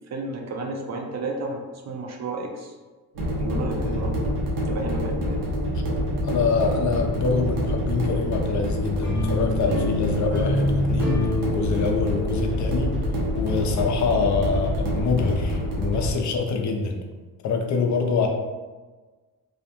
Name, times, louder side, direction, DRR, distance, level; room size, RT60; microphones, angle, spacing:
voice 1, 0.0-2.7 3.4-4.1 4.7-5.4, right 2 dB, 45° right, 2 dB, 0.5 m, -32 dB
sound 1, 3.1-16.1, equal, 90° right, 0.8 m, -26 dB
voice 2, 6.2-11.3 11.5-13.0 13.3-17.0 17.4-18.3, left 4 dB, 50° left, 3 dB, 0.5 m, -25 dB
sound 2, 9.0-14.1, left 2 dB, 5° left, 0.8 m, -29 dB
2.4 x 2.1 x 2.8 m, 1.3 s
cardioid pair, 95°, 37 cm